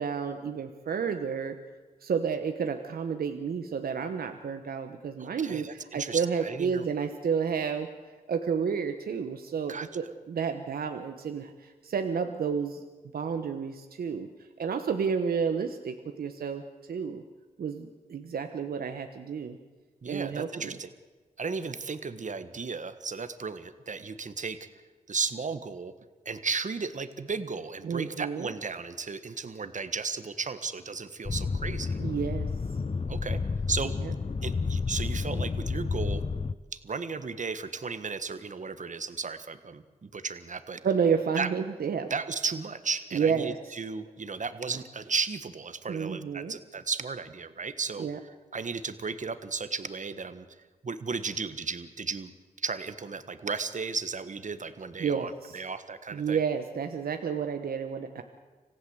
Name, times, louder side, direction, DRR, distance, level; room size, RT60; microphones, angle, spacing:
voice 1, 0.0-1.5 2.0-7.9 8.3-12.8 13.1-14.3 14.6-16.6 16.9-17.2 17.6-19.6 20.1-20.7 27.8-28.5 32.0-32.5 34.0-34.1 40.8-42.1 43.1-43.6 45.9-46.5 48.0-48.2 55.0-55.6 56.1-58.2, right 6 dB, 80° right, 6 dB, 1.2 m, -30 dB
voice 2, 5.2-6.9 9.7-9.9 20.0-20.9 21.4-24.7 25.1-25.9 26.2-32.0 33.1-33.4 33.7-33.9 34.4-36.2 36.7-40.8 41.4-41.5 42.1-50.5 50.8-52.3 52.6-56.4, right 5 dB, 55° right, 11 dB, 1.5 m, -35 dB
sound 1, 31.2-36.5, left 4 dB, 40° left, 0.8 m, -30 dB
26.5 x 16.0 x 8.1 m, 1.3 s
cardioid pair, 45°, 15 cm